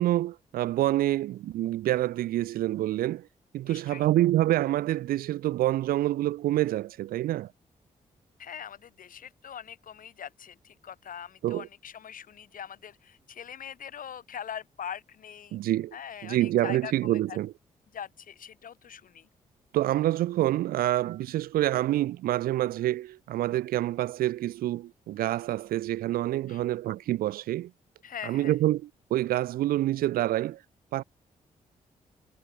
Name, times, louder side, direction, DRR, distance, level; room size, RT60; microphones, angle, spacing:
voice 1, 0.0-3.3 3.5-7.5 11.4-11.7 15.5-15.9 16.2-17.5 19.7-27.7 28.2-30.6 30.9-31.0, right 14 dB, 90° right, 1.0 m, -27 dB
voice 2, 3.7-4.1 8.4-15.6 15.9-16.9 17.3-17.4 17.9-19.3 26.5-26.6 28.0-28.6, left 8 dB, 70° left, 3.6 m, -42 dB
supercardioid pair, 60°, 15 cm